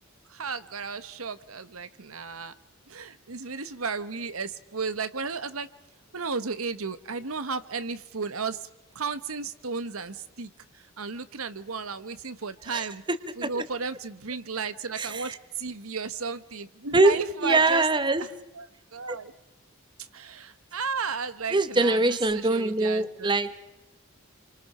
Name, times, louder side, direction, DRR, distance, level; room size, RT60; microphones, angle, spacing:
voice 1, 0.3-2.5 2.9-5.7 6.1-8.7 8.9-13.0 13.4-17.8 18.6-19.3 20.0-23.3, right 4 dB, 85° right, 12 dB, 1.3 m, -34 dB
voice 2, 15.0-15.4 16.9-17.2 17.4-18.2 19.1-19.2 21.5-23.6, right 2 dB, 20° right, 12 dB, 1.2 m, -23 dB
28.0 x 25.0 x 5.6 m, 0.92 s
head